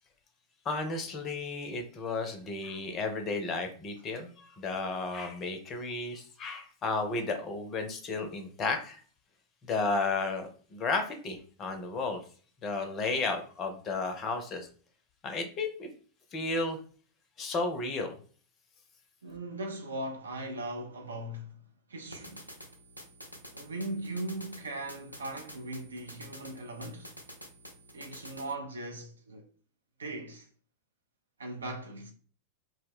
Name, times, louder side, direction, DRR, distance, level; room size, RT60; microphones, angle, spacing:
voice 1, 0.6-9.0 9.6-12.2 12.6-14.7 15.2-15.9 16.3-16.8 17.4-18.1, left 3 dB, 30° left, 0.5 m, -33 dB
voice 2, 19.2-21.6 21.9-22.5 23.5-27.1 27.9-29.4 30.0-30.5 31.4-32.1, right 1 dB, 70° right, 0.5 m, -39 dB
sound 1, 22.1-28.5, equal, 90° left, 0.5 m, -49 dB
2.2 x 2.1 x 3.3 m
figure-of-eight pair, 90°, 0 cm